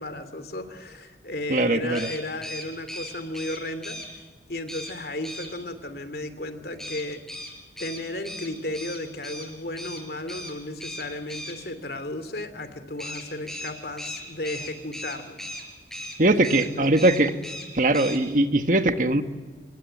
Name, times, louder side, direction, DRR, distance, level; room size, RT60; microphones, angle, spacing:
voice 1, 0.0-4.2 4.5-7.2 7.8-15.5 16.4-17.0, left 1 dB, 60° left, 11 dB, 2.9 m, -34 dB
voice 2, 1.5-2.1 16.2-17.3 17.7-19.2, right 2 dB, 45° right, 8 dB, 1.5 m, -21 dB
sound 1, 1.9-4.1 4.7-4.9 5.2-5.5 6.8-9.5 9.8-10.0 10.3-10.5 10.8-11.5 13.0-15.6 15.9-16.2 16.4-16.7 16.9-17.7 17.9-18.2, left 1 dB, 5° left, 5.1 m, -37 dB
27.5 x 21.5 x 9.2 m, 1.5 s
head